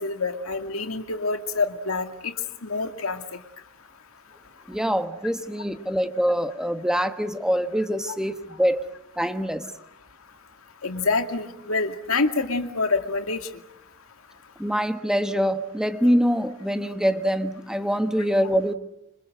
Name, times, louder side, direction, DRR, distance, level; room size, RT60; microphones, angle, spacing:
voice 1, 0.0-2.3 2.6-3.2 10.8-13.4, left 3 dB, 90° left, 6 dB, 2.3 m, -26 dB
voice 2, 4.7-8.9 9.2-9.7 14.6-18.7, equal, 5° right, 8 dB, 1.2 m, -24 dB
26.5 x 26.0 x 7.8 m, 0.82 s
head